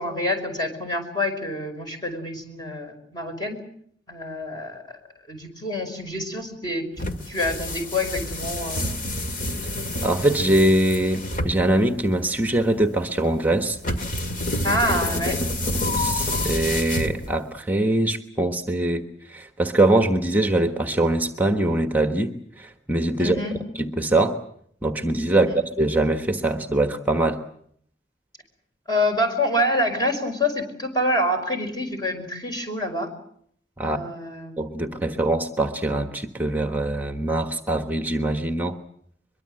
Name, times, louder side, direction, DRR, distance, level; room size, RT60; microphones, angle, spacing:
voice 1, 0.0-3.6 4.1-4.8 5.3-8.9 14.6-15.4 23.2-23.6 25.3-25.6 28.9-33.1 33.8-35.1, left 1 dB, 25° left, 4 dB, 5.4 m, -27 dB
sound 1, 7.0-17.6, left 1 dB, 50° left, 2.0 m, -28 dB
voice 2, 10.0-13.8 16.0-23.4 23.7-24.4 24.8-27.4 33.8-34.0 34.6-38.8, right 1 dB, 10° right, 6 dB, 1.3 m, -23 dB
23.0 x 23.0 x 7.8 m, 0.67 s
head